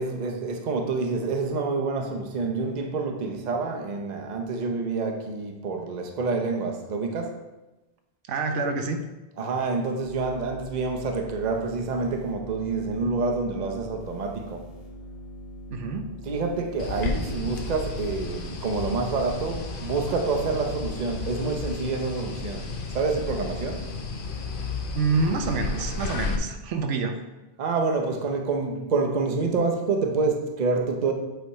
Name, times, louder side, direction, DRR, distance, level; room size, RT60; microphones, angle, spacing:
voice 1, 0.0-7.4 9.4-14.6 16.2-23.9 27.6-31.1, right 4 dB, 45° right, 3 dB, 0.8 m, -27 dB
voice 2, 8.3-9.0 15.7-16.1 24.9-27.2, right 4 dB, 85° right, 5 dB, 1.0 m, -27 dB
sound 1, 10.0-17.9, equal, 30° left, 1.6 m, -42 dB
sound 2, 16.8-26.4, left 4 dB, 55° left, 0.7 m, -33 dB
8.1 x 3.4 x 4.2 m, 1.0 s
omnidirectional pair, 1.2 m